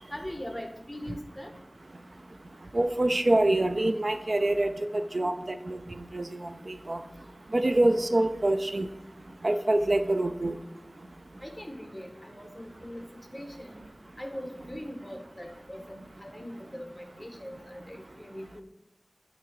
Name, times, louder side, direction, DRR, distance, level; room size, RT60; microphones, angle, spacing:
voice 1, 0.1-1.5 7.9-8.0 11.4-13.8 14.2-18.6, equal, 15° left, 3 dB, 1.5 m, -41 dB
voice 2, 2.7-5.8 6.1-6.2 6.7-7.0 7.5-8.9 9.4-10.5, right 1 dB, 65° right, 8 dB, 0.5 m, -25 dB
9.3 x 3.8 x 4.7 m, 0.95 s
wide cardioid pair, 45°, 0 cm